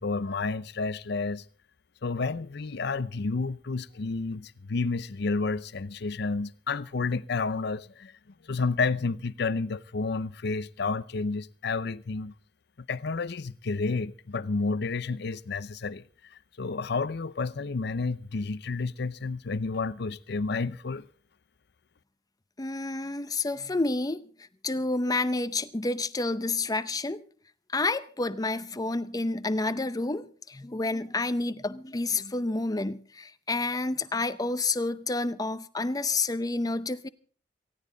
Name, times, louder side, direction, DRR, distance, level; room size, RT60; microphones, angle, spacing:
voice 1, 0.0-1.4 2.0-8.1 8.4-12.3 12.8-16.0 16.3-21.1, left 4 dB, 60° left, 0.6 m, -30 dB
voice 2, 22.6-24.2 24.6-27.2 27.7-37.1, left 2 dB, 20° left, 0.7 m, -29 dB
18.0 x 16.0 x 3.9 m
head